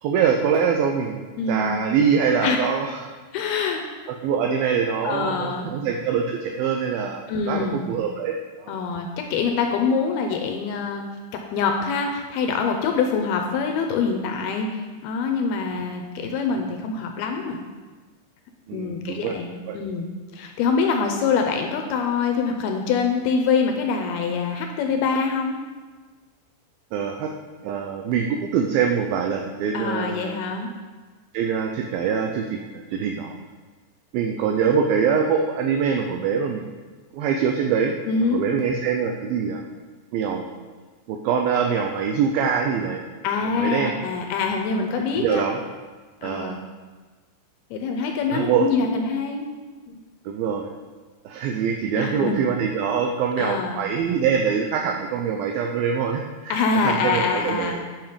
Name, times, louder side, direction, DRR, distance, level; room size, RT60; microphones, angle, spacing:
voice 1, 0.0-3.0 4.2-8.7 18.7-19.4 19.7-19.8 26.9-27.3 27.6-30.4 31.3-33.4 34.1-36.7 37.1-38.0 38.3-39.6 40.1-40.5 41.1-43.0 43.4-43.9 45.1-45.6 46.2-46.6 48.3-48.7 50.3-50.7 51.3-57.8, right 6 dB, 85° right, 3 dB, 2.1 m, -24 dB
voice 2, 1.4-1.8 2.4-2.6 3.3-3.8 5.0-5.7 7.3-7.8 8.7-11.0 11.5-17.6 18.7-20.1 20.3-25.6 29.7-30.7 38.1-38.4 43.2-45.4 46.2-46.6 47.7-49.5 49.9-50.0 52.0-52.4 53.4-53.8 56.5-57.9, left 5 dB, 75° left, 3 dB, 2.4 m, -25 dB
10.5 x 6.0 x 5.1 m, 1.4 s
omnidirectional pair, 5.0 m